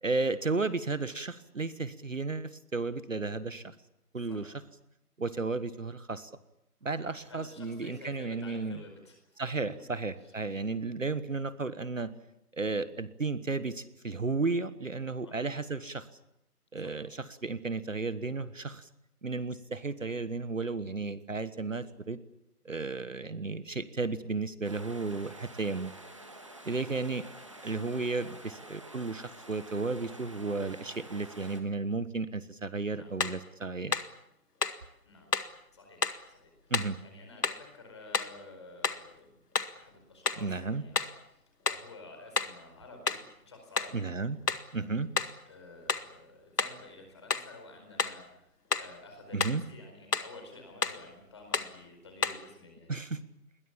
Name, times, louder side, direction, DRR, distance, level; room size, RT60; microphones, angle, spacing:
voice 1, 0.0-3.7 4.1-4.5 5.2-6.3 6.8-8.8 9.4-12.1 12.5-16.1 16.7-18.9 19.2-22.2 22.6-25.9 26.6-27.2 27.6-33.9 36.7-37.0 40.4-40.8 43.9-44.4 44.7-45.1 49.3-49.6 52.9-53.2, right 3 dB, 55° right, 14 dB, 1.4 m, -33 dB
voice 2, 7.3-9.7 10.6-10.8 15.2-15.5 16.8-17.0 22.9-23.1 32.9-33.1 35.0-35.3 35.7-36.5 36.8-39.4 39.7-44.1 45.5-53.0, left 2 dB, 20° left, 4 dB, 4.7 m, -51 dB
sound 1, 24.6-31.6, right 1 dB, 20° right, 1.6 m, -49 dB
sound 2, 33.2-33.4 33.9-34.2 34.6-34.8 35.3-35.6 36.0-36.2 36.7-37.0 37.4-37.7 38.1-38.4 38.8-39.1 39.6-39.8 40.3-40.5 41.0-41.2 41.7-41.9 42.4-42.6 43.1-43.3 43.8-44.0 44.5-44.7 45.2-45.4 45.9-46.1 46.6-46.8 47.3-47.5 48.0-48.2 48.7-48.9 49.4-49.6 50.1-50.4 50.8-51.0 51.5-51.8 52.2-52.5, left 4 dB, 75° left, 2.0 m, -31 dB
29.0 x 21.5 x 7.3 m, 0.84 s
figure-of-eight pair, 180°, 47 cm